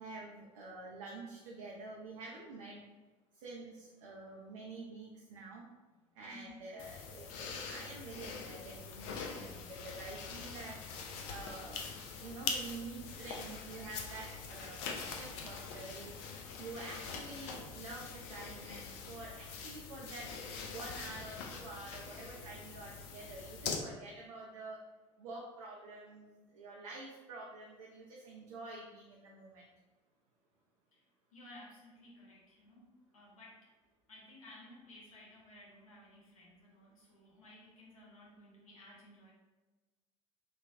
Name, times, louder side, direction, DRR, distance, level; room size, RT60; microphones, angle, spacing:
voice 1, 0.0-2.8 3.4-5.7 6.2-10.8 11.3-11.9 12.2-16.2 16.6-20.3 20.7-24.8 25.2-29.7, right 3 dB, 65° right, -2 dB, 0.4 m, -48 dB
voice 2, 6.1-6.6 30.9-33.7 34.1-39.3, left 1 dB, 80° left, -4 dB, 0.8 m, -56 dB
sound 1, 6.8-23.8, left 5 dB, 55° left, 0.4 m, -44 dB
3.1 x 2.2 x 2.6 m, 1.2 s
figure-of-eight pair, 65°, 17 cm